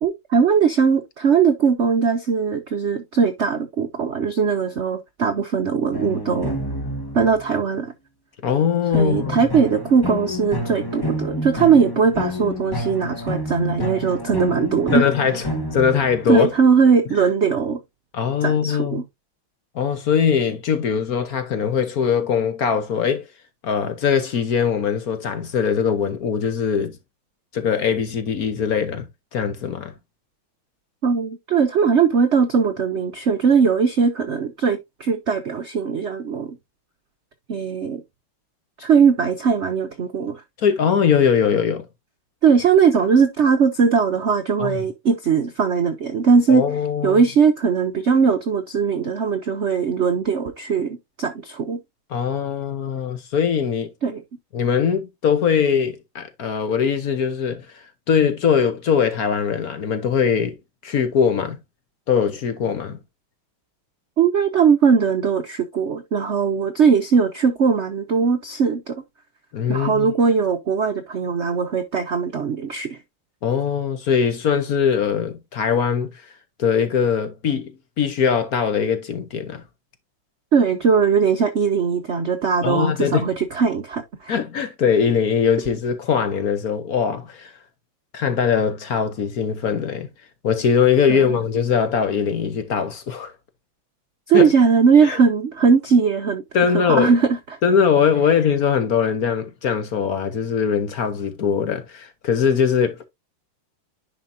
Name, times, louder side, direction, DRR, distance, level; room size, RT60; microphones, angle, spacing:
voice 1, 0.0-6.5 7.1-7.9 8.9-15.0 16.3-17.8 18.4-19.0 31.0-36.6 37.5-38.0 38.8-40.4 42.4-46.6 47.0-51.8 54.0-54.2 64.2-69.0 69.7-73.0 80.5-84.3 91.1-91.4 94.3-96.4 96.9-97.3, right 6 dB, 75° right, 0.6 m, -19 dB
sound 1, 5.9-7.6 8.9-16.7, left 1 dB, 20° left, 0.7 m, -29 dB
voice 2, 8.4-9.4 14.9-15.5 15.7-16.5 18.1-19.0 19.7-23.3 23.6-27.0 27.5-29.0 29.3-29.9 40.6-41.9 44.6-44.8 46.5-47.2 52.1-53.9 54.5-57.7 58.1-60.6 60.8-61.6 62.1-63.0 69.5-70.1 73.4-76.3 76.6-77.7 78.0-79.6 82.6-83.2 84.3-87.5 88.1-90.1 90.4-93.3 94.3-94.5 95.0-95.2 96.5-97.1 97.6-103.0, left 7 dB, 55° left, 1.2 m, -21 dB
10.0 x 5.1 x 2.6 m
omnidirectional pair, 2.3 m